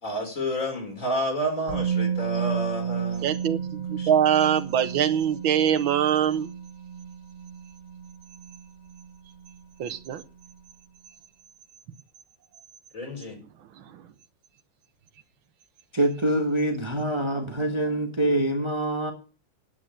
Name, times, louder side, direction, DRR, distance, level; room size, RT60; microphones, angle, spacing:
voice 1, 0.0-3.3 4.0-4.1 4.4-4.5 12.9-13.4, equal, 40° left, 4.9 m, -30 dB
Musical instrument, 1.7-9.6 9.9-10.0, right 7 dB, 60° left, 5.8 m, -33 dB
voice 2, 3.2-6.5 9.8-10.2 13.8-14.0, right 9 dB, 80° right, 1.8 m, -23 dB
voice 3, 15.9-19.1, right 1 dB, 15° right, 1.4 m, -25 dB
9.5 x 9.5 x 8.7 m
omnidirectional pair, 2.2 m